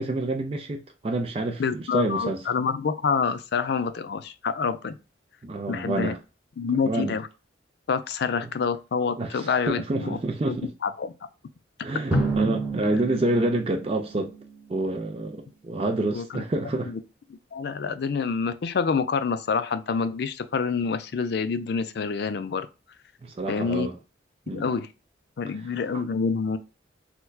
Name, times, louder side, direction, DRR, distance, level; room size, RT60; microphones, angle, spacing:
voice 1, 0.0-2.4 5.4-6.2 6.9-7.2 9.2-10.7 11.8-14.3 14.7-16.9 23.2-23.9 24.5-24.7, right 2 dB, 30° right, 0.4 m, -28 dB
voice 2, 1.6-5.0 5.7-6.1 6.6-7.3 7.9-10.2 10.5-11.1 12.9-13.0 16.1-17.0 17.5-22.7 23.5-23.9 24.5-24.9 25.4-26.6, left 5 dB, 55° left, 0.4 m, -27 dB
Drum, 12.1-14.8, right 2 dB, 10° right, 0.7 m, -29 dB
4.3 x 2.2 x 2.2 m
head